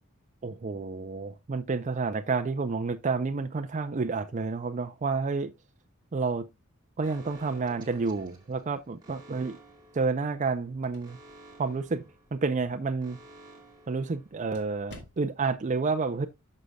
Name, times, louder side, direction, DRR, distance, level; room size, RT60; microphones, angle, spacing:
voice 1, 0.4-5.5 6.1-6.5 7.0-9.6 9.9-11.2 11.6-12.0 12.3-13.2 13.9-16.3, right 4 dB, 35° right, 0.5 m, -30 dB
Alarm, 7.0-14.8, right 1 dB, 20° right, 2.2 m, -54 dB
sound 1, 10.4-15.6, left 1 dB, 55° left, 2.4 m, -55 dB
11.5 x 6.6 x 2.2 m
head